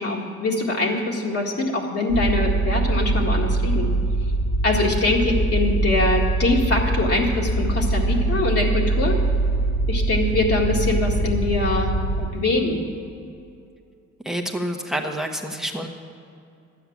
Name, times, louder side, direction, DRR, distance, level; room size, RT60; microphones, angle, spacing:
voice 1, 0.0-3.9 4.6-9.2 9.9-12.8, left 2 dB, 50° left, -2 dB, 2.0 m, -23 dB
sound 1, 2.1-12.3, right 2 dB, 30° left, 1.3 m, -23 dB
voice 2, 14.2-15.9, right 1 dB, ahead, 3 dB, 1.2 m, -28 dB
11.5 x 8.7 x 7.2 m, 2.5 s
cardioid pair, 90°, 30 cm